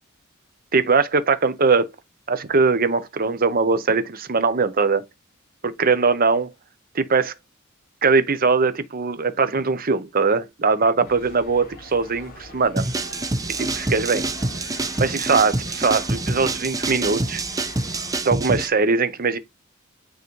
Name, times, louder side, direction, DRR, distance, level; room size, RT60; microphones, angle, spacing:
voice 1, 0.7-1.9 2.3-5.0 5.6-6.5 6.9-7.3 8.0-12.8 13.6-14.2 15.0-17.4 18.2-19.4, right 4 dB, 45° right, 0.8 m, -21 dB
sound 1, 11.0-18.2, left 2 dB, 45° left, 3.9 m, -42 dB
sound 2, 12.8-18.7, right 2 dB, 15° right, 0.5 m, -26 dB
9.4 x 3.8 x 3.2 m
head